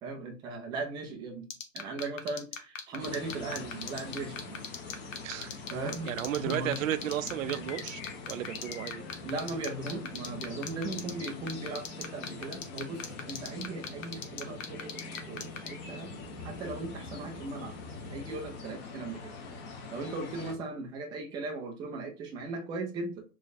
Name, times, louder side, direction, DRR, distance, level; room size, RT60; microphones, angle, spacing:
voice 1, 0.0-1.5 1.7-4.6 5.7-6.8 9.2-15.0 15.3-16.1 16.4-17.8 18.1-19.3 19.9-23.2, right 3 dB, 10° right, 0.3 m, -38 dB
sound 1, 1.5-15.7, left 7 dB, 80° left, 0.9 m, -37 dB
sound 2, 3.0-20.5, left 4 dB, 30° left, 0.9 m, -44 dB
voice 2, 5.2-5.5 6.1-8.0 8.3-9.0, right 11 dB, 80° right, 0.5 m, -33 dB
sound 3, 6.6-18.3, equal, 55° left, 1.7 m, -51 dB
3.1 x 2.3 x 4.0 m
hypercardioid pair, 130°, 39 cm